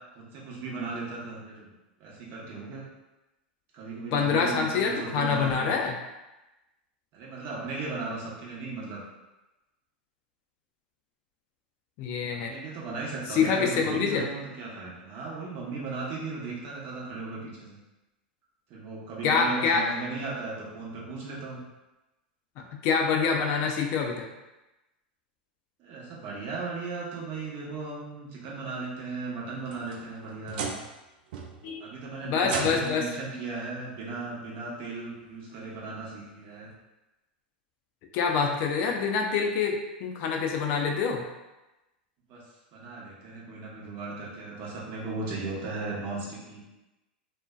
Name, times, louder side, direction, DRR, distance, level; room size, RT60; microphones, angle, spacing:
voice 1, 0.1-1.7 2.0-2.9 3.7-5.8 7.1-9.0 12.3-17.8 18.7-21.6 25.8-30.7 31.8-36.7 42.3-42.4 42.7-46.7, right 3 dB, 45° right, -4 dB, 0.8 m, -36 dB
voice 2, 4.1-5.9 12.0-12.5 13.3-14.3 19.2-19.8 22.6-24.3 31.6-31.9 32.2-33.1 38.1-41.3, left 5 dB, 50° left, 2 dB, 0.4 m, -26 dB
sound 1, 29.4-31.0 31.3-31.8 32.4-33.1 34.3-34.4 35.0-35.1 36.7-36.8, right 5 dB, 65° right, 0.4 m, -36 dB
2.5 x 2.1 x 2.3 m, 1.0 s
hypercardioid pair, 100°, 5 cm